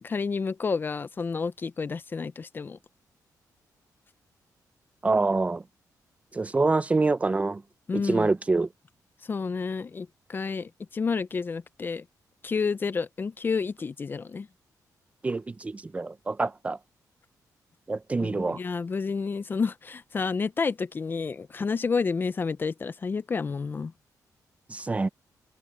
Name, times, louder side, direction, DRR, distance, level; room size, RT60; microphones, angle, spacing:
voice 1, 0.0-2.8 7.9-8.3 9.2-12.0 12.4-14.5 18.2-23.9, left 5 dB, 30° left, 0.5 m, -30 dB
voice 2, 5.0-5.6 6.3-7.6 7.9-8.7 15.2-16.8 17.9-18.6 24.7-25.1, right 3 dB, 20° right, 0.6 m, -26 dB
wide cardioid pair, 145°, 7 cm